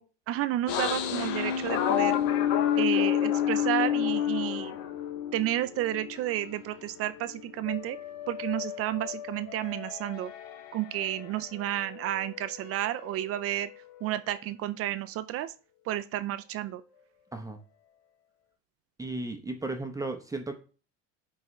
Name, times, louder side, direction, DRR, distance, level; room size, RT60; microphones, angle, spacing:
voice 1, 0.3-2.2 2.8-4.7 5.3-8.0 8.3-10.3 10.7-13.7 14.0-15.5 15.9-16.8, right 13 dB, 40° right, 13 dB, 0.4 m, -31 dB
sound 1, 0.7-6.6 7.1-11.3 11.5-14.1, left 10 dB, 70° left, 0.9 m, -30 dB
voice 2, 19.0-20.5, right 2 dB, 10° right, 4 dB, 0.8 m, -35 dB
9.1 x 3.6 x 3.2 m, 0.37 s
supercardioid pair, 115°, 35 cm